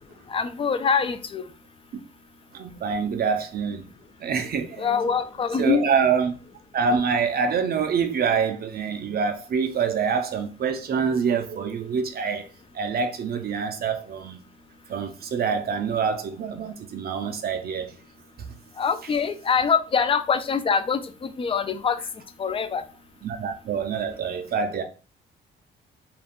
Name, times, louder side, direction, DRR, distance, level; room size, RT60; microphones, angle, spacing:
voice 1, 0.3-1.4 4.8-5.8 18.8-22.0 22.4-22.8, left 6 dB, 30° left, 0.4 m, -24 dB
voice 2, 2.5-3.8 4.2-5.1 5.6-6.4 6.7-12.4 12.7-14.4 14.9-17.9 18.4-18.5 20.0-20.1 23.2-24.8, right 6 dB, 50° right, 0.5 m, -26 dB
2.4 x 2.3 x 3.5 m
cardioid pair, 90°, 20 cm